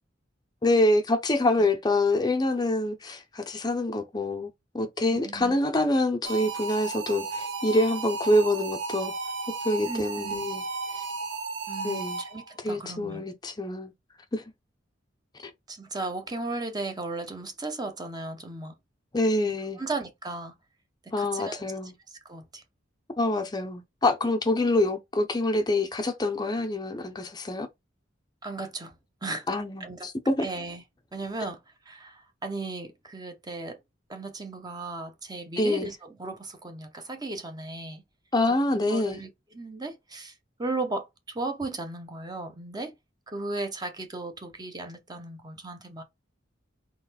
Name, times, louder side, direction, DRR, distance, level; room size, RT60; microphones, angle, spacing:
voice 1, 0.6-4.5 4.7-9.1 9.6-10.6 10.9-11.1 11.8-12.2 12.6-13.9 14.3-14.4 15.4-15.5 19.1-19.8 21.1-21.9 23.2-27.7 29.5-30.5 35.6-35.9 38.3-39.2, left 1 dB, 20° left, 0.6 m, -26 dB
voice 2, 5.1-5.6 9.9-10.5 11.7-13.3 15.7-18.8 19.4-20.5 21.2-21.7 22.1-22.6 28.4-29.0 29.2-29.5 29.8-30.1 30.4-30.8 31.1-31.6 31.9-33.8 34.1-38.0 38.7-40.3 40.6-42.9 43.3-46.0, right 2 dB, 20° right, 0.8 m, -36 dB
sound 1, 6.3-12.5, right 4 dB, 65° right, 0.8 m, -34 dB
4.0 x 3.1 x 4.1 m
head